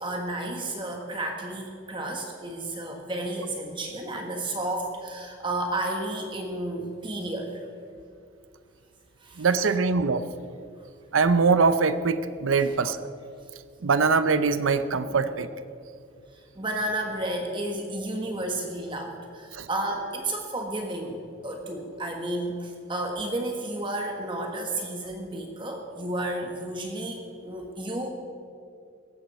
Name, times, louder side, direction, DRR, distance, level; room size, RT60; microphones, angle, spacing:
voice 1, 0.0-7.6 9.2-9.7 15.0-15.1 16.5-28.1, right 1 dB, 25° right, 2 dB, 1.4 m, -32 dB
voice 2, 9.4-10.3 11.1-13.1 13.8-15.5 19.5-19.7, right 4 dB, 85° right, 12 dB, 0.6 m, -22 dB
18.0 x 14.0 x 4.3 m, 2.5 s
head